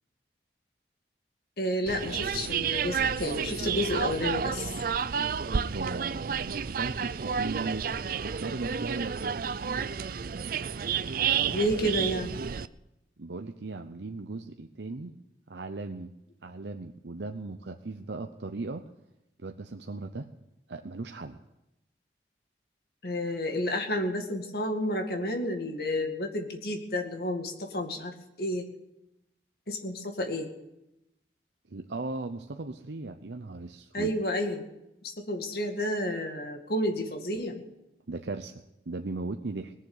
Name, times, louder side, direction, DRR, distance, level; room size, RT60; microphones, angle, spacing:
voice 1, 1.6-4.7 11.5-12.3 23.0-28.7 29.7-30.5 33.9-34.7 35.0-37.6, equal, 60° left, 4 dB, 2.1 m, -31 dB
sound 1, 1.9-12.7, right 6 dB, 50° right, 0.5 m, -31 dB
voice 2, 5.5-9.4 13.2-15.1 15.5-16.1 16.4-18.8 19.4-20.3 20.7-21.4 31.7-34.1 38.1-39.7, right 3 dB, 75° right, 6 dB, 0.8 m, -37 dB
19.5 x 7.5 x 9.6 m, 0.90 s
head